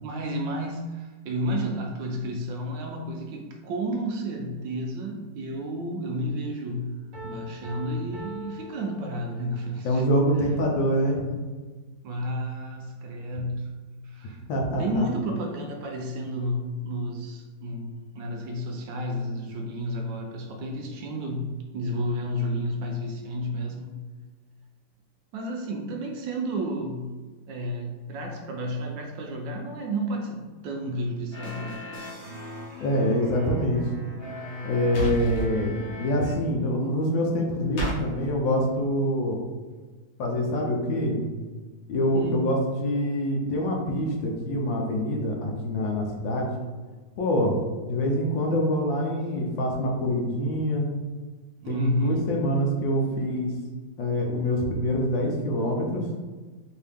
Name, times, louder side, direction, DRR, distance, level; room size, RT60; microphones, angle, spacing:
voice 1, 0.0-6.9 7.2-10.0 11.0-11.5 12.0-13.7 14.0-14.4 14.8-24.0 25.3-27.2 27.5-31.9 35.3-35.8 42.1-42.5 51.6-52.3, equal, 75° right, 1 dB, 1.2 m, -31 dB
Piano, 7.1-9.7, left 1 dB, 50° right, 1.3 m, -42 dB
voice 2, 9.8-11.2 14.5-15.1 32.8-33.9 34.6-39.4 40.2-41.2 41.9-46.5 47.2-47.5 47.9-50.9 51.7-53.5 54.0-56.0, equal, 70° left, 0 dB, 1.3 m, -25 dB
sound 1, 31.3-36.3, left 1 dB, 45° left, 0.8 m, -39 dB
sound 2, 34.9-35.5 37.8-38.0, right 2 dB, 90° left, 1.9 m, -28 dB
4.6 x 2.7 x 3.4 m, 1.3 s
omnidirectional pair, 2.3 m